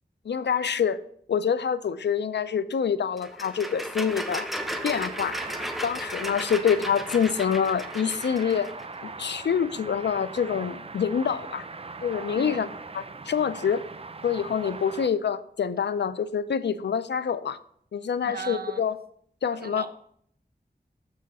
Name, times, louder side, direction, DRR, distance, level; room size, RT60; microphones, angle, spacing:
voice 1, 0.3-1.0 1.3-4.5 4.8-5.4 5.8-8.7 9.0-11.6 12.0-12.7 12.9-13.8 14.2-17.6 17.9-19.0 19.4-19.8, left 7 dB, 80° left, 15 dB, 0.4 m, -26 dB
sound 1, 3.2-8.9, equal, ahead, 0.7 m, -35 dB
sound 2, 4.5-15.1, right 4 dB, 35° right, 0.5 m, -41 dB
voice 2, 12.3-12.7 18.2-18.8 19.5-19.9, right 4 dB, 60° right, 7 dB, 0.8 m, -37 dB
6.4 x 6.3 x 4.1 m, 0.66 s
cardioid pair, 40°, 18 cm